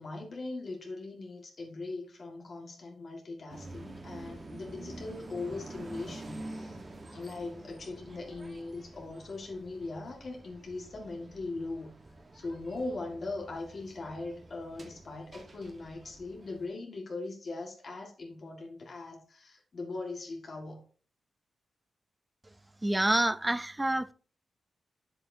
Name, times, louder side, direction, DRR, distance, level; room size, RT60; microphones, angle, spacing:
voice 1, 0.0-6.8 7.1-11.9 12.3-20.8, left 3 dB, 50° left, 1.7 m, -40 dB
sound 1, 3.5-16.7, right 2 dB, 35° right, 1.2 m, -48 dB
voice 2, 22.8-24.1, right 1 dB, 15° right, 0.4 m, -27 dB
8.5 x 7.7 x 2.7 m
wide cardioid pair, 105°, 0 cm